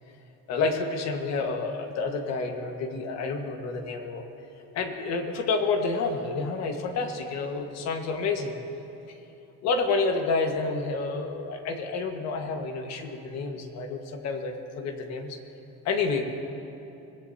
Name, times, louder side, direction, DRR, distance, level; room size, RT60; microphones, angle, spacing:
voice 1, 0.5-4.2 4.7-8.5 9.1-9.2 9.6-15.4 15.8-16.2, left 4 dB, 55° left, 4 dB, 1.6 m, -29 dB
24.5 x 18.0 x 2.8 m, 2.9 s
cardioid pair, 150°, 32 cm